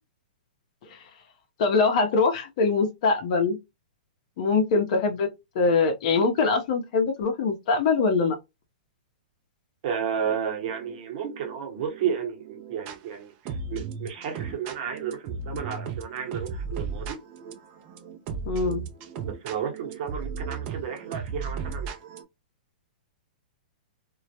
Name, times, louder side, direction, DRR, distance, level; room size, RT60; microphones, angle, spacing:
voice 1, 1.6-3.6 4.4-5.3 5.6-8.4 18.5-18.9, left 4 dB, 50° left, 0.6 m, -23 dB
voice 2, 9.8-17.2 19.2-21.9, right 7 dB, 50° right, 0.9 m, -32 dB
sound 1, 10.2-13.0 13.4-22.2, right 5 dB, 35° right, 0.4 m, -36 dB
2.2 x 2.0 x 2.7 m
hypercardioid pair, 145°, 5 cm